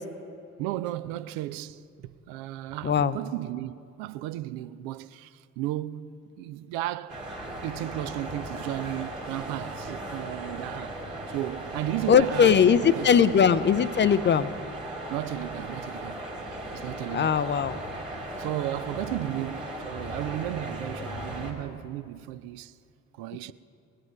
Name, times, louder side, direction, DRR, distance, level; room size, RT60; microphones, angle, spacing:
voice 1, 0.6-7.2 7.6-11.0 11.3-13.1 15.1-16.2 16.7-17.5 18.4-22.8 23.1-23.5, right 14 dB, 60° right, 0.5 m, -34 dB
voice 2, 2.8-3.2 12.1-14.5 17.1-17.8, left 7 dB, 30° left, 0.5 m, -20 dB
sound 1, 7.1-21.5, right 1 dB, 85° right, 1.8 m, -37 dB
20.0 x 9.0 x 5.3 m
figure-of-eight pair, 40°, 39 cm